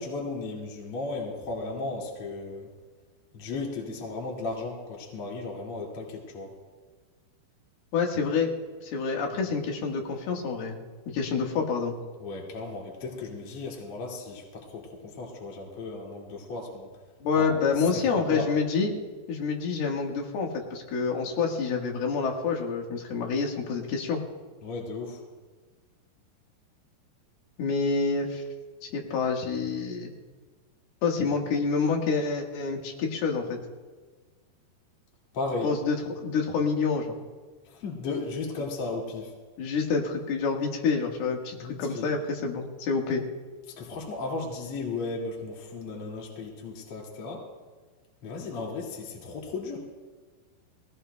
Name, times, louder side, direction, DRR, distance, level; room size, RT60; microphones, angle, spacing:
voice 1, 0.0-2.7 3.3-6.5 12.2-16.9 17.4-17.6 18.2-18.5 24.6-25.2 35.3-35.7 37.7-39.3 41.6-42.1 43.8-47.4 48.2-49.8, left 3 dB, 40° left, -2 dB, 2.6 m, -35 dB
voice 2, 7.9-8.5 8.8-10.8 11.1-12.0 17.2-19.0 19.3-24.2 27.6-28.4 28.9-30.1 31.0-33.6 35.6-37.2 39.6-43.2, left 5 dB, 70° left, 1 dB, 3.4 m, -27 dB
23.0 x 17.0 x 2.2 m, 1.4 s
omnidirectional pair, 4.9 m